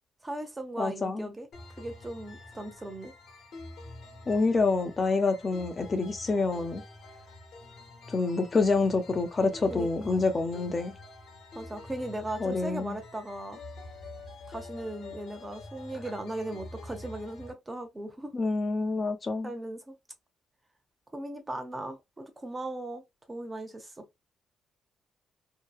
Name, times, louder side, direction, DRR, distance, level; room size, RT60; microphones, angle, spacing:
voice 1, 0.2-1.5 1.8-3.1 9.7-10.2 11.5-13.6 14.5-18.3 19.4-19.9 21.1-23.0 23.3-24.0, right 1 dB, 20° right, 0.7 m, -38 dB
voice 2, 0.8-1.3 4.3-6.8 8.1-10.9 12.4-13.0 18.3-19.5, left 3 dB, 35° left, 0.6 m, -27 dB
sound 1, 1.5-17.5, left 2 dB, 65° left, 1.1 m, -47 dB
2.8 x 2.2 x 2.3 m
cardioid pair, 90°, 0 cm